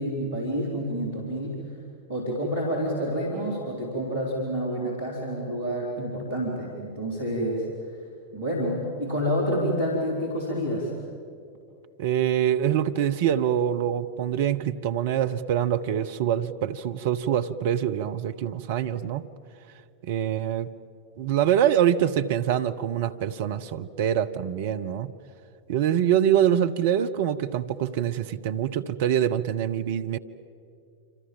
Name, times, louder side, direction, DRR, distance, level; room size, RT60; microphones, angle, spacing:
voice 1, 0.0-1.6 2.1-8.0 8.3-10.9, equal, 75° right, -3 dB, 4.5 m, -28 dB
voice 2, 12.0-19.3 20.0-20.7 21.2-25.1 25.7-30.2, right 10 dB, 55° right, 10 dB, 0.9 m, -25 dB
27.5 x 26.5 x 7.4 m, 2.5 s
figure-of-eight pair, 90°, 0 cm